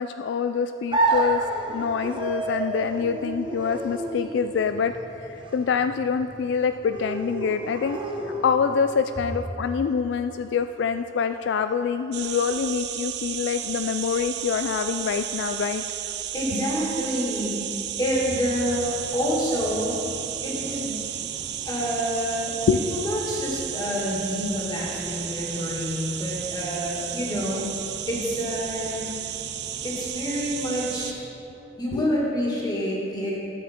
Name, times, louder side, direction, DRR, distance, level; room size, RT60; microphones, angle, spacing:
voice 1, 0.0-1.4 1.7-4.9 5.2-8.0 8.4-15.8 22.7-23.0 31.9-32.1, left 6 dB, 70° left, 9 dB, 0.3 m, -25 dB
sound 1, 0.9-8.9, right 2 dB, 25° right, 0.9 m, -30 dB
sound 2, 12.1-31.1, right 11 dB, 60° right, 0.5 m, -33 dB
voice 2, 16.3-17.7 18.0-20.0 20.4-21.0 21.7-22.5 22.9-27.8 28.1-29.1 29.8-31.3 31.8-33.4, equal, 20° left, -4 dB, 1.9 m, -28 dB
sound 3, 18.2-31.1, equal, 80° right, 1.4 m, -45 dB
13.0 x 7.2 x 4.3 m, 3.0 s
head